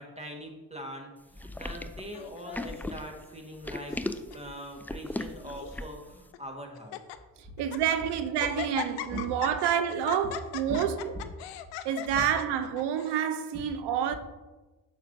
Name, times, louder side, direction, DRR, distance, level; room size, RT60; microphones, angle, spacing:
voice 1, 0.0-4.0 4.3-7.0 9.1-9.2 10.7-10.8 12.1-12.2, equal, 15° right, 1.5 m, -42 dB
sound 1, 1.4-6.1, left 1 dB, 5° left, 0.3 m, -37 dB
Laughter, 2.1-3.0 3.7-4.0 4.3-4.4 5.2-5.8 6.3-6.4 6.8-7.2 7.6-8.0 8.4-13.2, left 11 dB, 80° left, 0.5 m, -39 dB
voice 2, 7.6-11.1 11.8-14.2, right 9 dB, 70° right, 0.7 m, -28 dB
6.5 x 6.4 x 2.7 m
hypercardioid pair, 45°, 42 cm